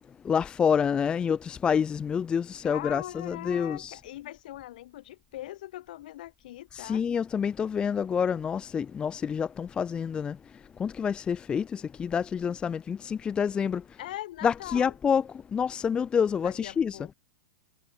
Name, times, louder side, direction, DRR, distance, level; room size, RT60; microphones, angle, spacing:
voice 1, 0.2-4.0 6.7-14.0 14.4-17.0, left 7 dB, 20° left, 0.4 m, -28 dB
voice 2, 2.6-7.0 14.0-14.9 16.4-17.1, left 14 dB, 65° left, 3.4 m, -41 dB
hypercardioid pair, 105°, 5 cm